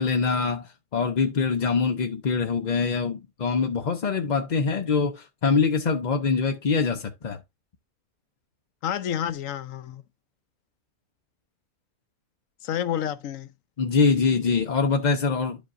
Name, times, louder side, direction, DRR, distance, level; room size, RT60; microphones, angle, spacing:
voice 1, 0.0-7.4 13.8-15.6, left 5 dB, 45° left, 0.6 m, -24 dB
voice 2, 8.8-10.0 12.6-13.5, left 10 dB, 75° left, 1.0 m, -29 dB
11.0 x 5.1 x 2.5 m
omnidirectional pair, 1.4 m